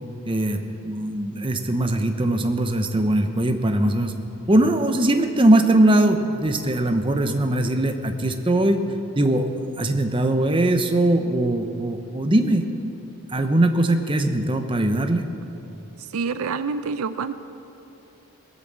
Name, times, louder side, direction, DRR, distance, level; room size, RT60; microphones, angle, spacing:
voice 1, 0.3-4.1 4.5-8.8 9.1-9.5 9.8-12.6 13.3-15.2, right 1 dB, 25° right, 6 dB, 0.7 m, -21 dB
voice 2, 16.0-17.3, right 5 dB, 75° right, 12 dB, 0.5 m, -27 dB
18.5 x 8.2 x 7.4 m, 2.8 s
head